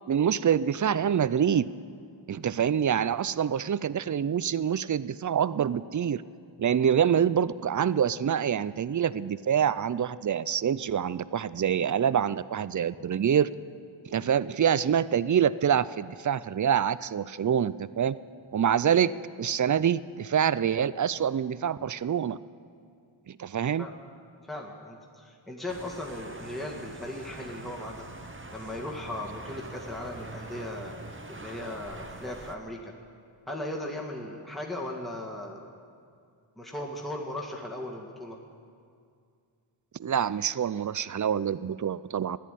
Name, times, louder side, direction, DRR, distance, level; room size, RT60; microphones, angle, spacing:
voice 1, 0.1-1.7 2.3-6.2 6.6-13.5 14.1-18.2 18.5-22.4 23.3-23.9 40.0-42.4, right 8 dB, 40° right, 18 dB, 0.4 m, -26 dB
voice 2, 24.5-28.1 28.5-32.9 33.5-35.7 36.6-38.4, left 1 dB, ahead, -1 dB, 1.7 m, -37 dB
sound 1, 25.7-32.6, right 2 dB, 25° right, 1.0 m, -44 dB
14.0 x 10.5 x 9.1 m, 2.3 s
wide cardioid pair, 55°, 49 cm